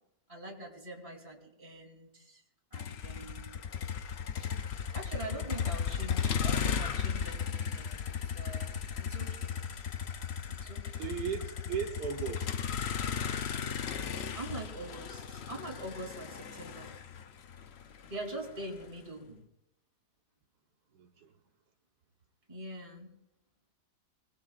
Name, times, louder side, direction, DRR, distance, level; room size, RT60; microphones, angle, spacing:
voice 1, 0.3-2.4 2.7-3.6 4.4-4.5 4.9-9.5 10.5-11.0 14.3-16.9 18.0-19.4 22.5-23.1, right 2 dB, 20° right, 0 dB, 3.2 m, -44 dB
Motor vehicle (road), 2.7-18.8, left 7 dB, 55° left, 0.8 m, -35 dB
voice 2, 11.0-12.6 20.9-21.3, right 7 dB, 85° right, 2 dB, 1.7 m, -37 dB
25.0 x 19.5 x 2.5 m, 0.85 s
omnidirectional pair, 1.7 m